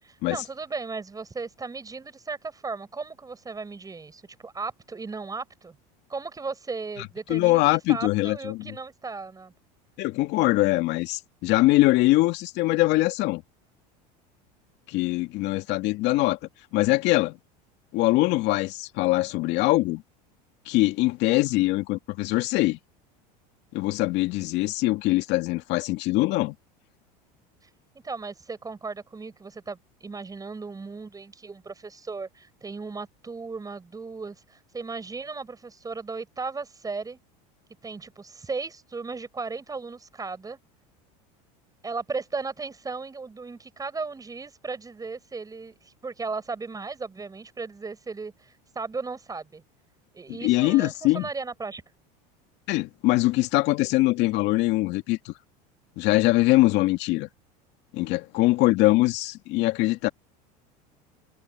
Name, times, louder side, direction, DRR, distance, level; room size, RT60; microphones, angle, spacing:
voice 1, 0.0-5.7 6.1-9.5 28.0-37.2 37.8-40.6 41.8-49.6 50.1-51.8, right 4 dB, 15° right, 6.8 m, -36 dB
voice 2, 7.3-8.7 10.0-13.4 14.9-16.4 16.7-17.4 17.9-20.0 20.7-22.8 23.7-26.5 50.4-51.2 52.7-55.3 56.0-57.3 57.9-60.1, left 19 dB, 60° left, 2.3 m, -22 dB
supercardioid pair, 105°, 20 cm